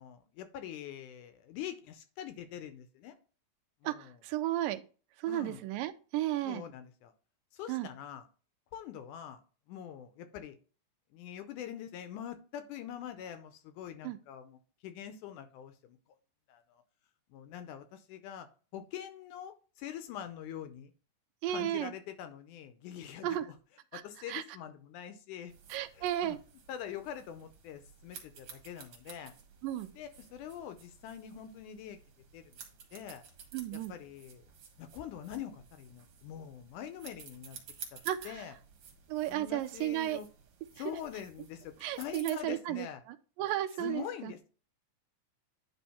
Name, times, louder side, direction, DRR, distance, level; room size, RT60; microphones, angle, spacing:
voice 1, 0.0-3.2 3.8-4.2 5.3-5.6 6.4-7.1 7.5-8.3 8.7-9.4 9.7-10.6 11.1-16.0 16.5-16.8 17.3-18.5 18.7-20.9 21.5-23.6 23.9-25.5 25.9-26.4 26.7-29.3 29.9-32.0 32.3-32.6 32.9-33.2 33.7-34.5 34.8-37.6 37.9-38.0 38.2-38.6 39.3-40.3 40.8-43.0 43.8-44.5, left 10 dB, 75° left, 9 dB, 2.0 m, -44 dB
voice 2, 3.8-4.8 5.2-6.6 7.7-7.9 14.0-14.2 21.4-21.9 23.2-23.5 23.9-24.0 24.3-24.4 25.7-26.4 29.6-29.9 33.5-33.9 38.1-38.3 39.1-40.2 41.8-42.9 43.4-44.3, right 13 dB, 85° right, 11 dB, 2.2 m, -33 dB
sound 1, 25.5-42.4, right 6 dB, 55° right, 2.4 m, -53 dB
10.0 x 3.4 x 4.2 m, 0.37 s
omnidirectional pair, 3.9 m